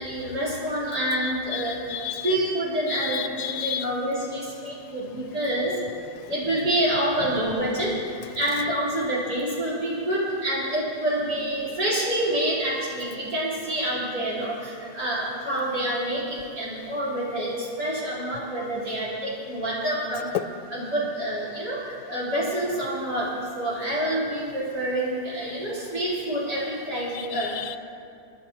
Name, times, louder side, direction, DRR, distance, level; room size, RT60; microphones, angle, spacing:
voice 1, 0.0-1.9 2.2-5.8 6.3-8.0 8.3-20.3 20.7-27.5, right 1 dB, 80° right, -8 dB, 4.4 m, -27 dB
voice 2, 1.2-2.4 2.9-3.9 15.5-15.6 27.1-27.8, left 11 dB, 80° left, 12 dB, 1.1 m, -33 dB
30.0 x 10.5 x 2.9 m, 2.4 s
omnidirectional pair, 1.7 m